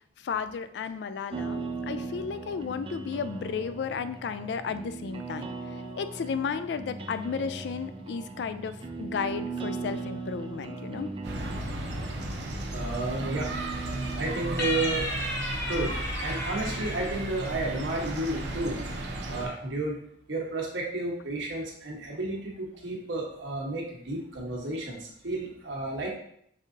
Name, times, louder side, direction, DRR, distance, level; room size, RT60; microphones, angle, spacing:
voice 1, 0.2-5.5 6.0-11.1, left 6 dB, 65° left, 11 dB, 0.3 m, -33 dB
sound 1, 1.3-15.0, right 4 dB, 30° right, 0.4 m, -38 dB
sound 2, 11.2-19.5, right 1 dB, 65° right, 0.8 m, -35 dB
voice 2, 12.7-13.6 14.1-15.1 15.5-18.8 19.3-20.0 20.3-26.1, right 2 dB, 85° right, -1 dB, 1.2 m, -32 dB
sound 3, 14.6-18.1, left 1 dB, 15° left, 0.9 m, -34 dB
5.4 x 3.6 x 2.7 m, 0.70 s
head